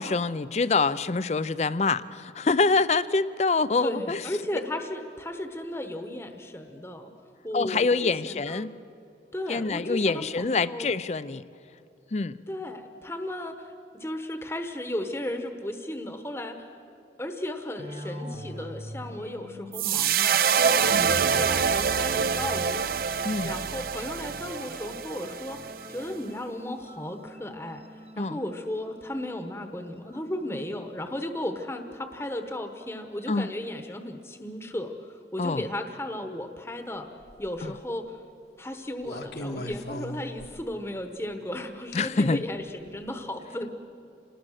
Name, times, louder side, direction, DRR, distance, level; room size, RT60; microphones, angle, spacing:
voice 1, 0.0-4.2 7.5-8.7 9.5-11.4 12.1-12.3 20.9-21.1 23.2-23.5 28.2-28.4 33.3-33.5 35.4-35.6 41.9-42.4, left 3 dB, 35° left, 16 dB, 0.5 m, -25 dB
voice 2, 3.8-7.1 7.4-7.9 8.2-8.7 9.3-10.9 12.5-16.7 17.2-22.9 23.4-37.1 37.4-38.1 38.6-43.7, left 1 dB, 15° left, 6 dB, 1.0 m, -35 dB
sound 1, 17.8-23.9 24.7-30.9, equal, 30° right, 1.2 m, -45 dB
sound 2, 19.7-26.1, right 7 dB, 55° right, 0.6 m, -26 dB
sound 3, 37.2-37.7 39.0-40.8 41.9-42.0 42.9-43.1, left 1 dB, 65° left, 1.3 m, -37 dB
26.5 x 19.5 x 6.5 m, 2.7 s
head